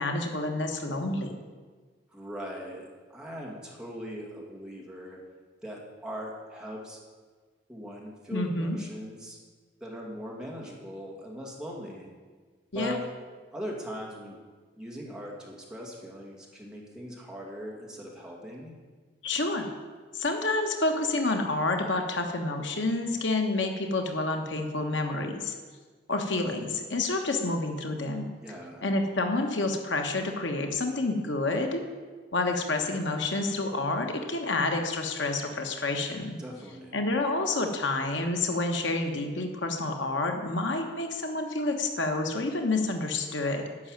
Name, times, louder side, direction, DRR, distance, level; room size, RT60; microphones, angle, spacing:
voice 1, 0.0-1.3 8.3-8.8 12.7-13.0 19.2-19.7 20.1-25.5 26.1-28.3 28.8-31.8 32.3-36.4 36.9-43.9, left 2 dB, 75° left, 4 dB, 1.4 m, -29 dB
voice 2, 2.1-5.2 5.6-7.0 7.7-9.4 9.8-12.1 12.7-13.0 13.5-14.4 14.7-18.7 28.4-28.8 36.4-37.0, equal, 5° right, -3 dB, 2.4 m, -40 dB
11.0 x 6.3 x 9.0 m, 1.5 s
head